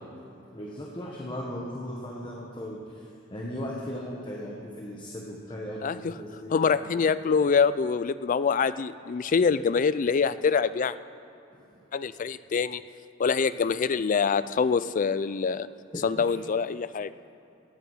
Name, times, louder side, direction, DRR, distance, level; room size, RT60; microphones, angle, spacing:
voice 1, 0.5-6.7 7.0-7.1 11.5-11.7 15.9-16.3, equal, 25° left, -3 dB, 1.3 m, -37 dB
voice 2, 5.8-6.1 6.5-10.9 11.9-12.8 13.2-15.7 16.0-17.1, left 5 dB, 40° left, 15 dB, 0.4 m, -25 dB
16.5 x 8.6 x 5.6 m, 2.8 s
head